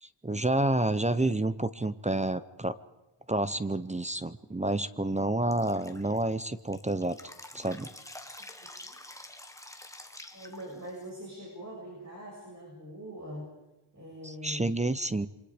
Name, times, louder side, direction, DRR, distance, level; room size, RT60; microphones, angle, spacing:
voice 1, 0.0-2.8 3.3-7.2 7.5-7.9 14.2-15.3, right 2 dB, 15° right, 14 dB, 0.7 m, -29 dB
Drip, 5.5-11.1, left 1 dB, 5° left, 1.6 m, -48 dB
voice 2, 8.6-9.0 10.3-13.5 13.9-14.7, equal, 35° right, -3 dB, 7.4 m, -43 dB
28.5 x 25.0 x 5.1 m, 1.0 s
wide cardioid pair, 130°, 49 cm